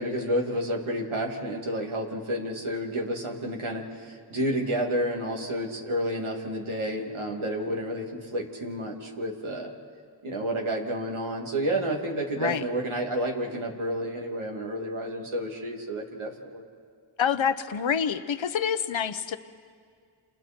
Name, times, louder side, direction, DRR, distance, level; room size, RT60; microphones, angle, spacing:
voice 1, 0.0-9.7 10.2-16.7, equal, 80° right, 0 dB, 2.8 m, -30 dB
voice 2, 17.2-19.4, left 7 dB, 70° left, 11 dB, 1.0 m, -27 dB
28.5 x 27.0 x 4.5 m, 2.1 s
cardioid pair, 40°, 48 cm